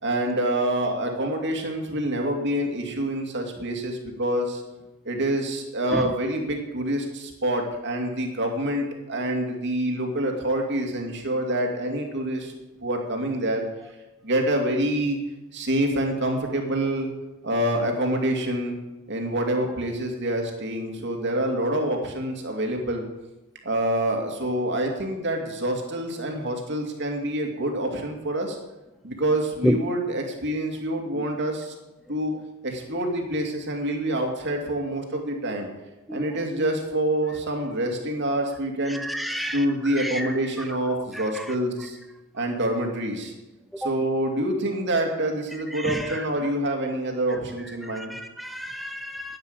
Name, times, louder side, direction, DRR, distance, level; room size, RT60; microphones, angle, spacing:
voice 1, 0.0-4.6 5.0-12.5 12.8-13.6 14.2-15.2 15.5-17.1 17.4-18.8 19.1-23.0 23.6-28.6 29.0-31.7 32.1-32.3 32.6-35.7 36.1-42.0 42.3-43.3 43.8-48.1, right 1 dB, 55° right, 2 dB, 2.5 m, -26 dB
voice 2, 38.9-40.4 41.1-41.5 43.7-44.0 45.7-46.3 47.8-49.4, equal, ahead, 7 dB, 0.4 m, -30 dB
10.5 x 10.0 x 8.2 m, 1.1 s
head